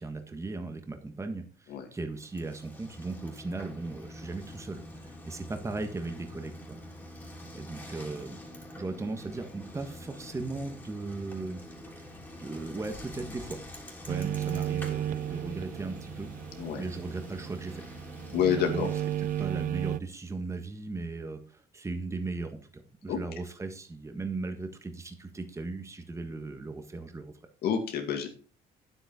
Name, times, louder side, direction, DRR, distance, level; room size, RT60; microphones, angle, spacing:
voice 1, 0.0-6.8 7.5-8.4 8.8-11.6 12.4-13.6 14.0-16.3 16.8-17.8 18.3-18.9 19.4-27.3, right 3 dB, 15° right, 6 dB, 1.5 m, -37 dB
Bicycle, 2.2-19.7, left 1 dB, 10° left, 3.1 m, -46 dB
sound 1, 14.1-20.0, right 11 dB, 55° right, 0.5 m, -34 dB
voice 2, 18.3-18.9 23.1-23.2 27.6-28.3, left 8 dB, 70° left, 5 dB, 2.2 m, -28 dB
9.2 x 8.1 x 4.2 m, 0.39 s
cardioid pair, 110°, 17 cm